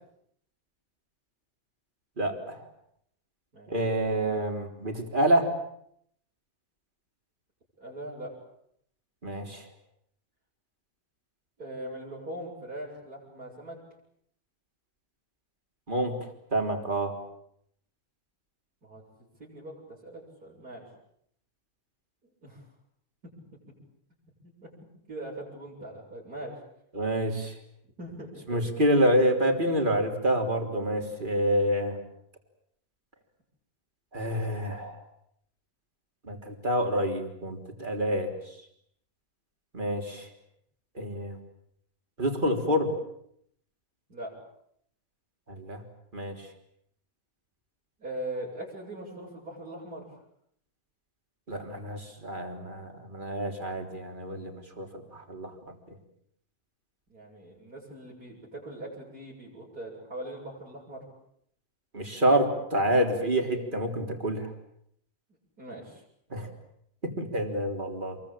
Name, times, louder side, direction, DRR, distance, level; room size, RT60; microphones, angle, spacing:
voice 1, 2.2-2.6 3.7-5.5 9.2-9.6 15.9-17.2 26.9-27.6 28.5-32.0 34.1-35.0 36.2-38.3 39.7-40.3 41.0-41.4 42.2-42.9 45.5-45.8 46.1-46.5 51.5-55.5 61.9-64.5 66.3-66.5 67.0-68.2, right 1 dB, 30° right, 4 dB, 4.0 m, -27 dB
voice 2, 7.8-8.3 11.6-13.8 18.8-19.0 19.4-20.9 22.4-22.6 23.2-23.3 24.4-24.7 25.1-26.5 28.0-28.7 44.1-44.3 48.0-50.1 57.1-61.0 65.6-66.0, right 1 dB, 70° right, -7 dB, 8.1 m, -41 dB
28.0 x 23.0 x 8.8 m, 0.72 s
omnidirectional pair, 1.7 m